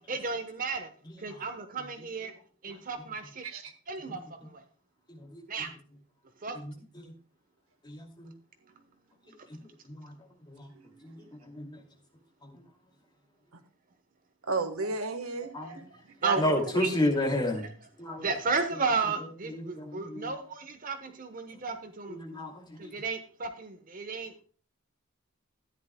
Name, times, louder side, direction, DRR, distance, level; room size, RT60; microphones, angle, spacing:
voice 1, 0.1-0.9 1.2-2.3 2.6-3.4 3.9-4.2 5.5-5.7 6.4-6.6 15.6-15.7 16.2-16.9 18.2-22.4 22.8-24.3, right 4 dB, 40° right, 1.1 m, -33 dB
voice 2, 1.1-1.4 4.1-4.2 5.1-5.7 6.5-7.1 7.8-8.3 9.8-10.1 10.5-10.7 11.0-11.8 12.4-12.6 15.5-15.7 16.4-17.7 18.0-18.3 19.4-20.3 21.5-21.6 22.1-22.9, left 1 dB, 20° left, 2.4 m, -33 dB
voice 3, 10.7-11.0 14.4-15.8 16.2-16.6, right 3 dB, 90° right, 1.4 m, -33 dB
14.0 x 10.5 x 2.2 m
head